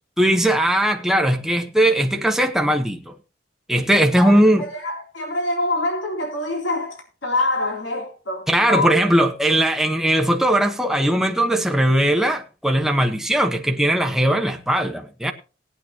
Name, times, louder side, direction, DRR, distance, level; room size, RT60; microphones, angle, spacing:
voice 1, 0.2-3.1 3.7-4.6 8.5-15.3, right 1 dB, ahead, 1.0 m, -19 dB
voice 2, 4.2-8.9, left 2 dB, 75° left, 3.8 m, -25 dB
19.5 x 8.7 x 3.0 m
head